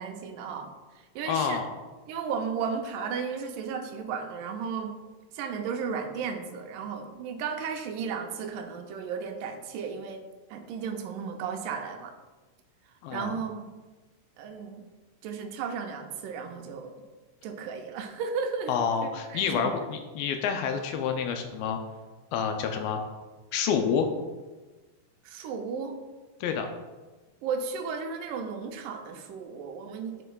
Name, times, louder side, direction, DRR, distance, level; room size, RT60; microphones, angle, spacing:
voice 1, 0.0-1.6 2.1-5.0 5.3-10.2 10.5-12.2 13.1-13.7 14.4-14.8 15.2-16.9 17.4-19.9 25.3-26.0 27.4-30.2, right 6 dB, 80° right, 4 dB, 2.0 m, -34 dB
voice 2, 1.3-1.7 13.0-13.4 18.7-21.8 22.3-23.1 23.5-24.1 26.4-26.7, left 7 dB, 85° left, 5 dB, 2.3 m, -28 dB
11.0 x 4.5 x 2.3 m, 1.2 s
omnidirectional pair, 4.3 m